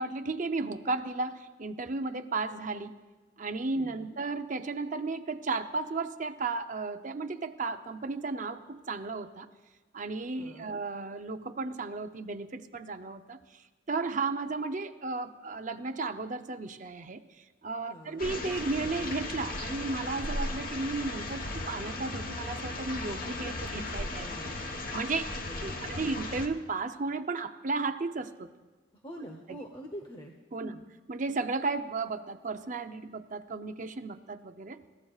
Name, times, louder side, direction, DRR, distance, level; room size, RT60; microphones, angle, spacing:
voice 1, 0.0-2.9 3.4-9.5 9.9-13.4 13.9-17.2 17.6-24.3 24.9-25.3 25.6-28.5 29.5-29.6 30.5-30.7 31.1-34.8, right 3 dB, 40° right, 8 dB, 0.6 m, -34 dB
voice 2, 3.7-4.1 10.3-10.8 17.8-18.3 23.2-23.7 24.1-24.8 25.3-26.1 29.0-30.8, equal, 25° left, 3 dB, 0.9 m, -46 dB
sound 1, 18.2-26.5, left 2 dB, 45° left, 1.2 m, -36 dB
29.0 x 15.0 x 2.4 m, 1.3 s
head